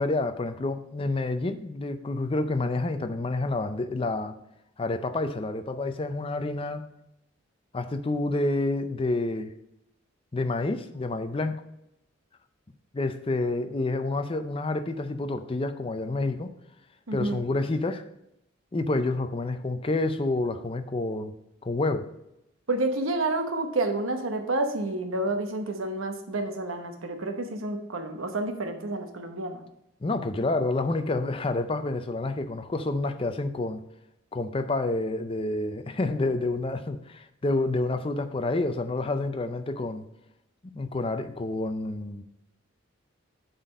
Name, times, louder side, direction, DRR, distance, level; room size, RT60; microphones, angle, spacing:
voice 1, 0.0-4.3 4.8-6.8 7.7-9.5 10.3-11.6 12.9-16.5 17.1-18.0 18.7-21.3 21.6-22.1 30.0-33.8 34.3-40.1 40.6-42.2, left 2 dB, 25° left, 9 dB, 0.5 m, -28 dB
voice 2, 17.1-17.4 22.7-29.6, right 2 dB, 85° right, 5 dB, 1.0 m, -29 dB
7.8 x 4.0 x 5.2 m, 0.83 s
head